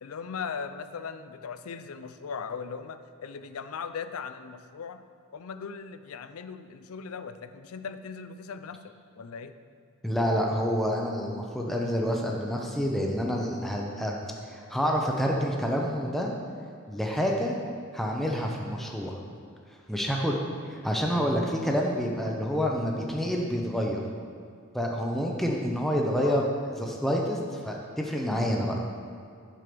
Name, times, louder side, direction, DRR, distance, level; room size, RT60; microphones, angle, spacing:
voice 1, 0.0-5.0 5.3-9.5 26.2-26.5, left 5 dB, 75° left, 11 dB, 0.5 m, -38 dB
voice 2, 10.0-14.1 14.5-16.3 16.9-17.5 17.9-19.2 19.9-20.4 20.7-24.0 24.7-26.4 26.8-28.8, equal, ahead, -1 dB, 0.7 m, -28 dB
7.6 x 6.7 x 5.1 m, 2.3 s
head